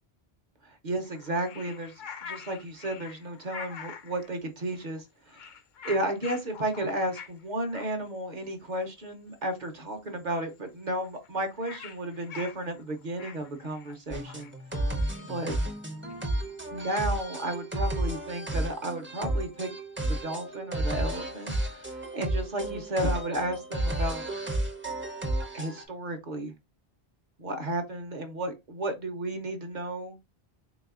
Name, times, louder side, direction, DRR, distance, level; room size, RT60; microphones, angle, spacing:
voice 1, 0.8-1.9 2.3-5.0 5.8-14.5 15.3-15.6 16.7-19.7 20.1-24.2 25.5-26.5 27.4-30.2, right 1 dB, 50° right, 0.7 m, -33 dB
sound 1, 1.0-4.3 4.8-5.0 5.3-7.4 7.7-7.9 8.5-8.6 8.8-9.0 9.3-9.7 9.9-10.0 10.2-10.3 10.5-17.2, left 6 dB, 55° left, 0.6 m, -45 dB
sound 2, 14.1-25.8, right 1 dB, 15° right, 0.5 m, -32 dB
4.0 x 3.3 x 2.4 m
omnidirectional pair, 1.1 m